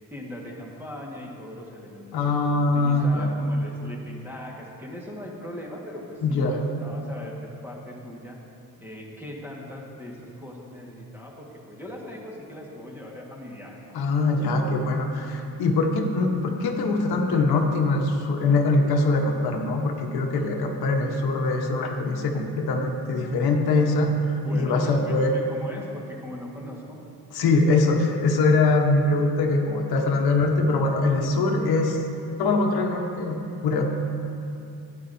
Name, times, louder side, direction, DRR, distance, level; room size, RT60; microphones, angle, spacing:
voice 1, 0.1-8.4 8.8-13.8 24.4-27.0, left 1 dB, 5° right, -3 dB, 1.6 m, -39 dB
voice 2, 2.1-3.3 6.2-6.6 13.9-25.3 27.3-32.0 32.4-33.4 33.6-33.8, left 3 dB, 75° left, 2 dB, 1.1 m, -23 dB
12.5 x 9.4 x 2.7 m, 2.7 s
cardioid pair, 105°, 38 cm